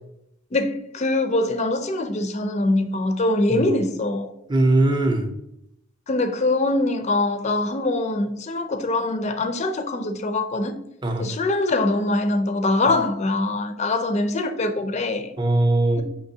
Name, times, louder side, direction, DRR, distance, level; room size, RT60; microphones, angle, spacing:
voice 1, 0.5-4.3 6.1-10.8 11.2-15.3, left 2 dB, 30° left, 0.4 m, -23 dB
voice 2, 4.5-5.3 11.0-11.3 15.4-16.0, right 2 dB, 20° right, 0.5 m, -20 dB
5.9 x 3.0 x 2.7 m
head